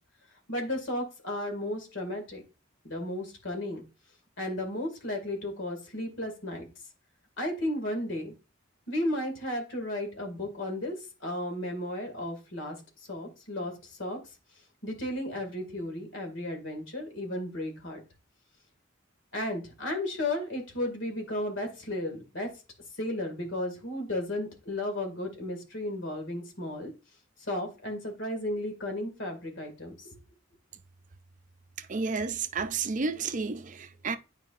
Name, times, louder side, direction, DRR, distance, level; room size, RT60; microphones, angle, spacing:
voice 1, 0.5-2.4 2.8-3.8 4.4-6.7 7.4-8.3 8.9-11.0 11.2-12.8 13.1-14.2 14.8-18.0 19.3-22.5 22.9-26.9 27.4-30.2, left 1 dB, 70° left, 2.2 m, -34 dB
voice 2, 31.8-34.2, right 4 dB, 40° right, 0.5 m, -31 dB
9.4 x 4.9 x 2.5 m
head